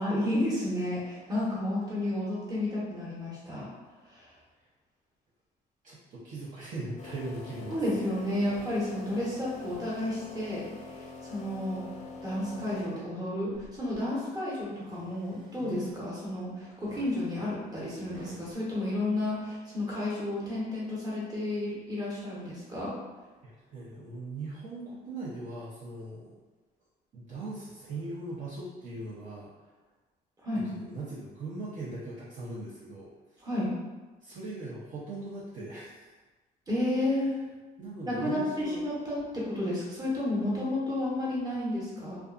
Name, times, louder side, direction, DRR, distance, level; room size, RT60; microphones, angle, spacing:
voice 1, 0.0-3.7 4.1-4.3 7.7-10.7 10.9-11.9 12.2-22.9 30.4-30.6 33.4-33.7 36.7-37.3 38.1-42.2, left 1 dB, 20° right, -7 dB, 1.0 m, -31 dB
voice 2, 5.8-7.8 23.4-26.3 27.1-29.5 30.5-33.1 34.2-36.1 37.2-37.4 37.8-38.8, right 2 dB, 45° right, -8 dB, 0.6 m, -40 dB
sound 1, 7.0-13.3, left 4 dB, 45° left, 0.4 m, -45 dB
sound 2, 13.5-14.1 14.6-16.2 16.8-18.5, right 4 dB, 90° right, 0.7 m, -50 dB
2.5 x 2.3 x 2.4 m, 1.2 s
cardioid pair, 110°, 17 cm